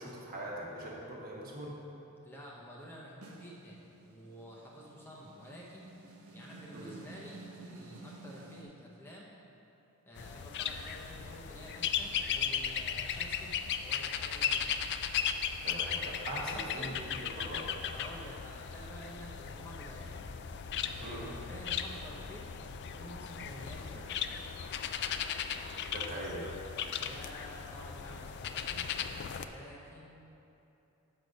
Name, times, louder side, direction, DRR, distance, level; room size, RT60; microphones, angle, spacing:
voice 1, 0.0-1.8 6.7-7.0 15.6-17.7 21.0-21.3 25.9-26.6, right 1 dB, 40° right, -3 dB, 1.2 m, -41 dB
voice 2, 2.2-6.0 6.3-9.3 10.0-14.8 16.3-17.0 17.9-20.2 20.8-22.6 22.9-24.2 26.9-28.9 29.4-30.2, equal, 10° left, -5 dB, 0.7 m, -50 dB
sound 1, 3.2-8.6, right 2 dB, 85° right, 0.9 m, -52 dB
sound 2, 10.2-29.5, left 8 dB, 50° left, 0.3 m, -37 dB
6.5 x 6.4 x 5.3 m, 2.9 s
head